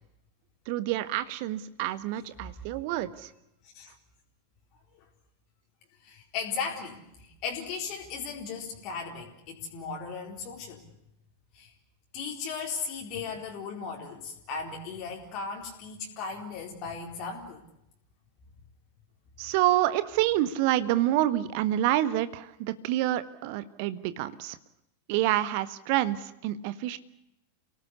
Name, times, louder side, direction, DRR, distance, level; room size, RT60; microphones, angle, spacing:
voice 1, 0.7-3.3 19.4-24.6 25.1-27.0, right 14 dB, 45° right, 13 dB, 1.6 m, -27 dB
voice 2, 6.0-10.9 11.5-11.7 12.1-17.6, left 5 dB, 40° left, 0 dB, 4.2 m, -37 dB
28.5 x 18.5 x 8.4 m, 0.85 s
figure-of-eight pair, 90°, 0 cm